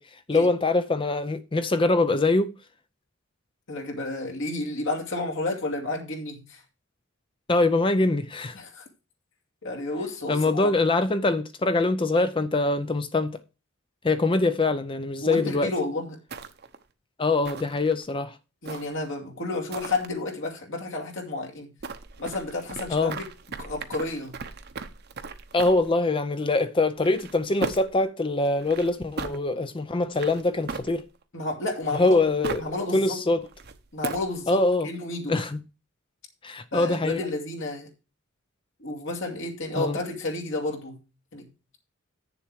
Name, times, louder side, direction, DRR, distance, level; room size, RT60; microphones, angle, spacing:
voice 1, 0.0-2.5 7.5-8.6 10.3-13.4 14.0-15.7 17.2-18.4 22.9-23.2 25.5-31.0 31.9-32.6 32.9-33.4 34.5-34.9 35.3-35.6 36.4-37.2 39.7-40.0, left 2 dB, 25° left, 0.5 m, -23 dB
voice 2, 3.7-6.6 8.5-8.8 9.6-10.8 15.2-16.2 18.6-21.7 22.2-23.2 23.6-24.4 31.3-32.2 32.6-33.2 33.9-35.3 36.7-37.9 38.8-41.0 41.3-41.5, left 2 dB, 65° left, 2.5 m, -31 dB
sound 1, 16.3-16.8 17.4-18.0 18.6-19.1 19.7-20.1 21.8-25.9 27.0-28.0 28.6-29.4 30.1-31.2 31.8-32.7 33.4-34.4, right 4 dB, 50° right, 0.9 m, -38 dB
8.6 x 7.0 x 4.7 m
head